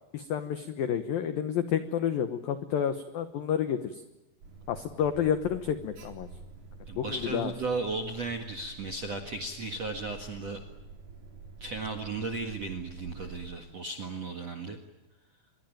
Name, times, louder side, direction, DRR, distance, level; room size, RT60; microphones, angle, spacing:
voice 1, 0.1-4.0 4.7-6.3 7.0-7.5, left 9 dB, 85° left, 10 dB, 2.0 m, -30 dB
Alarm, 4.4-13.5, right 4 dB, 45° right, 5.0 m, -48 dB
voice 2, 6.9-10.6 11.6-14.8, right 3 dB, 60° right, 4 dB, 1.6 m, -35 dB
26.0 x 22.5 x 9.2 m, 1.0 s
omnidirectional pair, 5.9 m